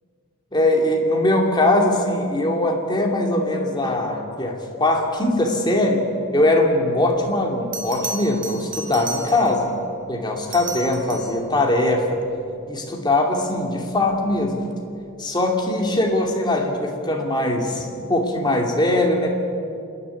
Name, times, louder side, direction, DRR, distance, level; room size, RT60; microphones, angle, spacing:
voice 1, 0.5-6.1 6.3-9.7 10.1-12.2 12.7-14.7 15.2-19.3, left 1 dB, 20° left, 1 dB, 2.7 m, -21 dB
Bell, 7.1-7.2 7.7-9.7 10.4-11.4 14.1-14.4, right 3 dB, 40° right, 2.4 m, -33 dB
27.0 x 11.0 x 9.8 m, 2.5 s
head